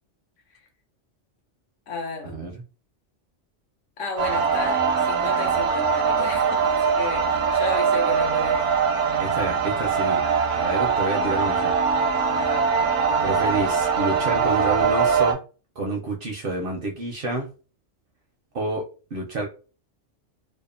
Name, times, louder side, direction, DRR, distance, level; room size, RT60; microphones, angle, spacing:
voice 1, 1.9-2.4 4.0-8.8 12.4-12.7, left 4 dB, 80° left, 1.0 m, -33 dB
sound 1, 4.2-15.3, right 6 dB, 85° right, 0.9 m, -22 dB
voice 2, 9.2-10.2 10.5-11.7 13.2-15.4 15.8-17.5 18.5-18.9 19.1-19.5, right 2 dB, 60° right, 0.6 m, -28 dB
2.7 x 2.2 x 2.4 m
omnidirectional pair, 1.3 m